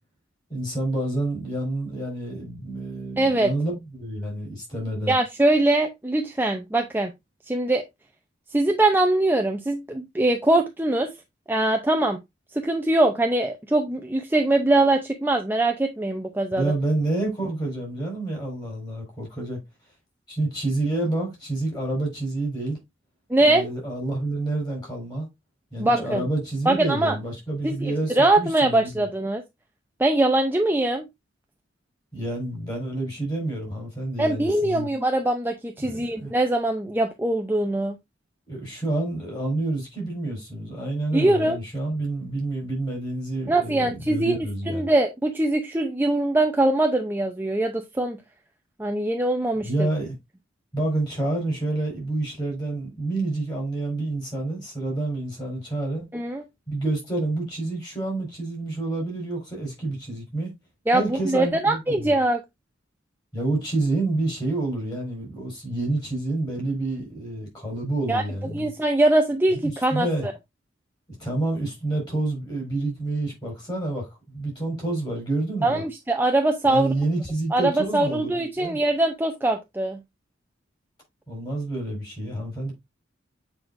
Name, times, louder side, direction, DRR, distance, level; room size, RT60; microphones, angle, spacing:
voice 1, 0.5-5.1 16.5-19.6 20.3-22.8 23.4-25.3 25.7-29.1 32.1-34.9 35.8-36.3 38.5-44.9 49.6-50.1 50.7-56.1 56.7-60.5 60.9-62.1 63.3-68.7 69.5-70.3 71.2-75.8 76.7-78.8 81.3-82.7, right 2 dB, 20° left, 4.3 m, -28 dB
voice 2, 3.2-3.5 5.1-7.1 7.5-7.8 8.5-11.1 11.5-12.2 12.5-16.7 23.3-23.7 25.8-26.3 26.7-27.2 27.6-29.4 30.0-31.1 34.2-38.0 41.1-41.6 43.5-44.4 44.7-48.2 48.8-49.9 56.1-56.4 60.9-62.4 68.1-68.2 68.5-70.3 75.6-76.9 77.5-80.0, right 2 dB, 10° right, 0.6 m, -22 dB
7.9 x 4.8 x 2.5 m
head